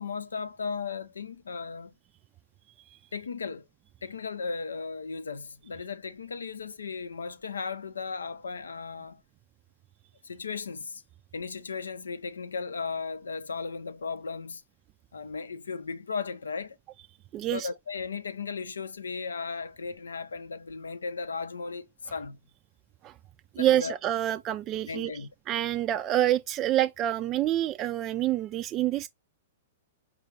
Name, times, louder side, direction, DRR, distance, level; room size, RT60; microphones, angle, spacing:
voice 1, 0.0-1.9 3.1-3.7 4.0-9.2 10.2-11.0 11.3-14.6 15.1-16.8 17.5-22.4 23.6-24.0 24.9-25.3, left 5 dB, 85° left, 0.5 m, -36 dB
voice 2, 17.3-17.7 23.0-23.1 23.5-25.1 25.5-29.1, right 12 dB, 30° right, 0.3 m, -27 dB
4.6 x 2.4 x 3.3 m
hypercardioid pair, 115°, 0 cm